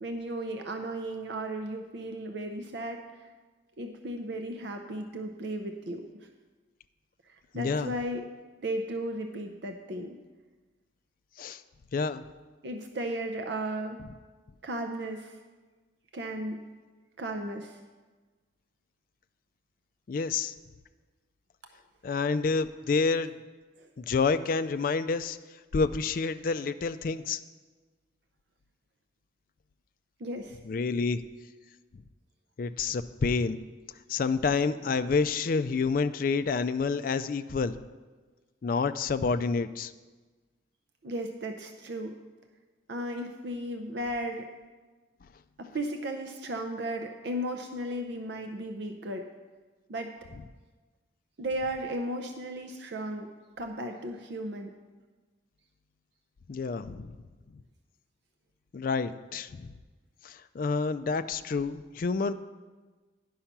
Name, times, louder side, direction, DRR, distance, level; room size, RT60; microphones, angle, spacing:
voice 1, 0.0-3.3 3.8-6.3 7.5-8.2 8.6-10.2 12.6-14.0 14.6-15.4 16.1-16.7 17.2-17.8 23.8-23.9 30.2-30.6 41.0-42.2 42.9-44.5 45.6-49.3 49.9-50.1 51.4-53.3 53.6-54.7, right 1 dB, 60° right, 5 dB, 0.6 m, -35 dB
voice 2, 7.5-8.0 11.4-11.6 11.9-12.2 20.1-20.5 22.0-23.3 24.0-25.4 25.7-27.4 30.7-31.2 32.6-33.6 34.1-37.7 38.6-39.9 56.5-57.2 58.7-59.7 60.2-62.3, left 4 dB, 45° left, 11 dB, 0.3 m, -28 dB
10.0 x 5.5 x 5.9 m, 1.3 s
head